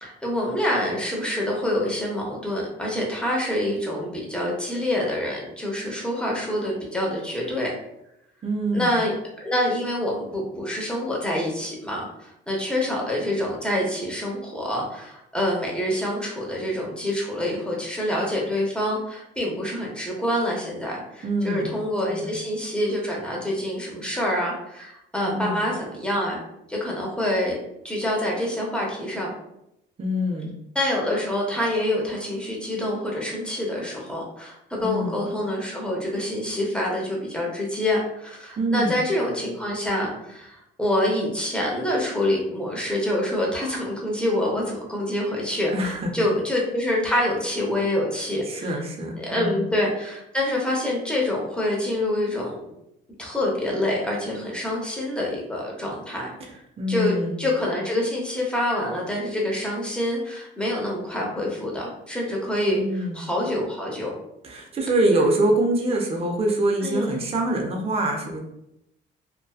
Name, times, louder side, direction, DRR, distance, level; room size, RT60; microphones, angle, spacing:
voice 1, 0.0-7.7 8.7-26.4 26.7-27.6 27.8-29.3 30.7-48.8 49.2-52.6 53.2-56.3 56.9-64.1 66.8-67.2, left 1 dB, 5° left, -3 dB, 0.8 m, -26 dB
voice 2, 8.4-9.0 21.2-21.7 22.1-22.3 25.2-25.6 30.0-30.5 34.8-35.2 38.6-39.0 45.7-46.1 48.4-49.7 56.4-56.5 56.8-57.4 62.7-63.2 64.4-68.4, right 1 dB, 30° right, 1 dB, 0.5 m, -25 dB
2.6 x 2.2 x 2.3 m, 0.82 s
cardioid pair, 90°, 20 cm